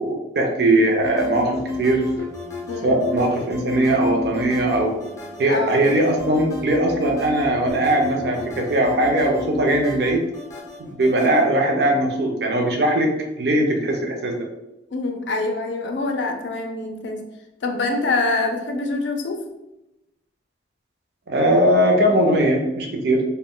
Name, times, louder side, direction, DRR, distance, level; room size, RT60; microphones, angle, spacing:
voice 1, 0.0-2.2 2.8-5.0 5.4-10.2 10.8-14.5 21.3-23.2, right 1 dB, 60° right, 2 dB, 0.5 m, -20 dB
sound 1, 1.0-11.4, left 4 dB, 15° left, 0.5 m, -33 dB
voice 2, 5.4-5.9 14.9-17.2 17.6-19.4, left 2 dB, 75° left, 5 dB, 0.4 m, -25 dB
2.2 x 2.1 x 3.6 m, 0.94 s
head